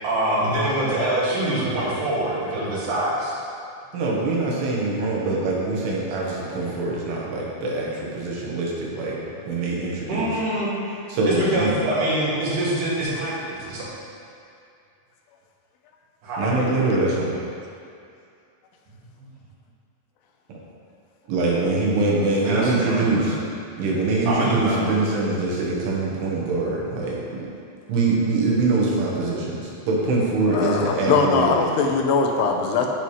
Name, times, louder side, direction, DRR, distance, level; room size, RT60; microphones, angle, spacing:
voice 1, 0.0-3.3 10.1-10.8 11.3-13.9 16.2-16.9 19.2-19.3 22.4-23.3 24.3-24.9, right 1 dB, 75° right, -9 dB, 4.2 m, -25 dB
voice 2, 3.9-9.2 9.5-10.3 11.1-11.7 16.4-17.3 21.3-23.3 23.8-27.5 27.9-31.5, right 3 dB, 90° right, -4 dB, 3.5 m, -23 dB
voice 3, 30.5-32.9, left 5 dB, 85° left, 3 dB, 2.8 m, -21 dB
15.0 x 5.6 x 3.2 m, 2.5 s
omnidirectional pair, 4.6 m